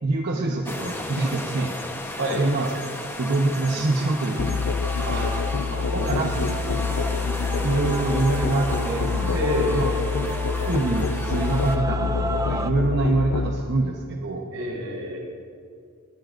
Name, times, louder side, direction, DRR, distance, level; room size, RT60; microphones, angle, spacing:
voice 1, 0.0-1.8 2.3-2.7 3.2-4.6 5.9-6.9 7.6-9.9 10.7-14.5, right 2 dB, 50° right, 0 dB, 0.9 m, -25 dB
sound 1, 0.6-11.8, left 1 dB, 10° left, 1.0 m, -35 dB
Male singing / Female singing / Musical instrument, 3.2-12.7, right 2 dB, 15° right, 0.5 m, -34 dB
Musical instrument, 4.4-13.6, left 5 dB, 85° left, 0.5 m, -26 dB
voice 2, 5.0-6.3 9.3-10.0 14.5-15.2, left 1 dB, 80° right, -2 dB, 4.1 m, -29 dB
21.0 x 17.0 x 2.6 m, 2.4 s
head